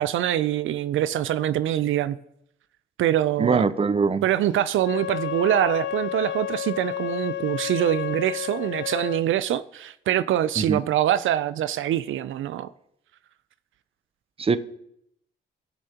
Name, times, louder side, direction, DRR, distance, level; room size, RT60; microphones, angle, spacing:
voice 1, 0.0-2.2 3.0-3.7 4.2-12.7, right 12 dB, 70° right, 0.5 m, -24 dB
voice 2, 3.4-4.2 10.6-10.8 14.4-14.6, right 4 dB, 25° right, 0.7 m, -22 dB
Wind instrument woodwind instrument, 4.8-9.2, left 12 dB, 60° left, 0.5 m, -31 dB
17.5 x 6.6 x 2.9 m
supercardioid pair, 65°, 21 cm